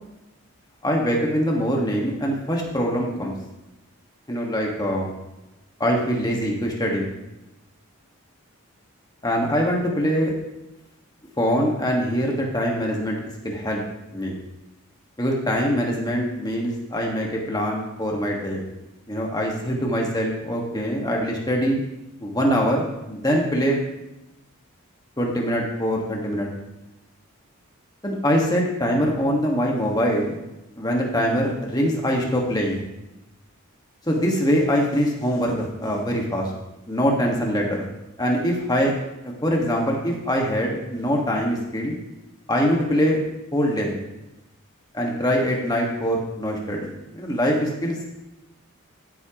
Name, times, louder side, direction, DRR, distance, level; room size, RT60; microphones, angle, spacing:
voice 1, 0.8-3.3 4.3-5.1 5.8-7.1 9.2-10.3 11.4-13.8 14.1-14.4 15.2-18.6 19.1-21.8 22.2-23.8 25.2-26.5 28.0-30.4 30.8-32.8 34.1-36.5 36.9-37.9 38.2-38.9 39.2-42.0 42.5-43.2 43.5-43.9 44.9-48.0, equal, 15° left, -1 dB, 1.6 m, -23 dB
14.0 x 8.8 x 3.0 m, 0.96 s
head